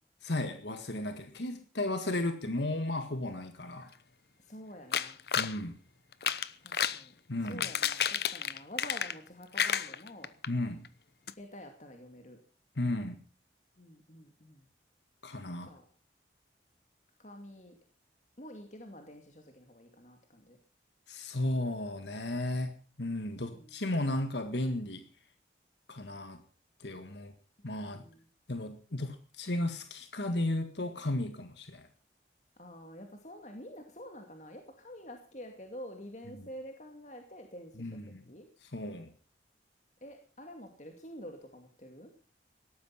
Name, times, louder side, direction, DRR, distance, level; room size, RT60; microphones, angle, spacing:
voice 1, 0.2-3.9 5.3-5.8 7.3-7.7 10.5-10.8 12.8-13.2 15.2-15.7 21.1-25.0 25.9-26.4 26.8-27.3 27.6-28.0 28.5-31.9 36.3-36.5 37.8-38.2 38.6-39.1, left 1 dB, 75° left, 8 dB, 1.7 m, -34 dB
voice 2, 4.4-5.2 6.6-7.1 7.4-10.3 11.3-12.4 13.8-14.7 15.6-15.8 17.2-17.8 18.4-20.6 23.5-23.9 27.6-28.3 32.6-38.0 38.3-38.5 40.0-42.1, equal, 40° left, 4 dB, 2.3 m, -48 dB
sound 1, 4.9-5.6 6.1-7.0 7.4-9.3 9.5-10.5 10.8-10.9 11.3-11.4, left 8 dB, 60° left, 0.9 m, -31 dB
18.0 x 13.0 x 5.7 m, 0.38 s
head